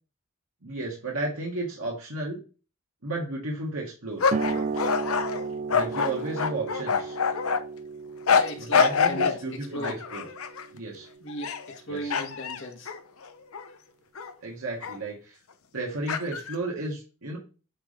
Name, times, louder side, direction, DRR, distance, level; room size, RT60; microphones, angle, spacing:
voice 1, 0.6-2.4 3.0-4.2 5.7-7.2 8.6-10.2 10.7-11.1 11.9-12.1 14.4-15.4 15.7-17.4, right 2 dB, 90° right, -3 dB, 1.9 m, -33 dB
sound 1, 4.2-7.6 8.3-9.4 9.8-10.6 11.3-11.8 12.1-13.7 14.2-14.3 14.8-15.0 16.1-16.5, left 6 dB, 85° left, 0.7 m, -26 dB
sound 2, 4.3-11.5, right 4 dB, 35° right, 0.4 m, -35 dB
voice 2, 8.4-9.4 9.7-10.0 11.2-12.9 13.7-13.8, equal, 60° left, 0 dB, 1.9 m, -37 dB
8.7 x 3.6 x 3.8 m, 0.34 s
head